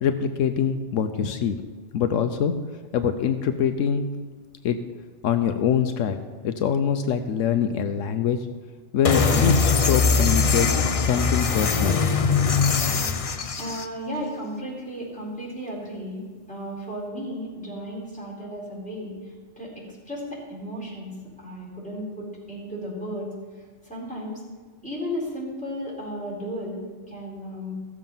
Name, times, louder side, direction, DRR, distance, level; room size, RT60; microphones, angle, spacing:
voice 1, 0.0-1.6 1.9-2.6 2.9-4.1 4.6-4.8 5.2-8.4 8.9-12.2, left 7 dB, 80° left, 8 dB, 1.0 m, -24 dB
sound 1, 9.0-13.9, left 5 dB, 40° left, 0.5 m, -21 dB
voice 2, 13.6-16.2 16.5-19.1 19.6-23.3 23.9-24.4 24.8-26.8 27.1-27.7, equal, 5° left, -6 dB, 4.1 m, -34 dB
14.5 x 7.3 x 5.6 m, 1.4 s
omnidirectional pair, 1.3 m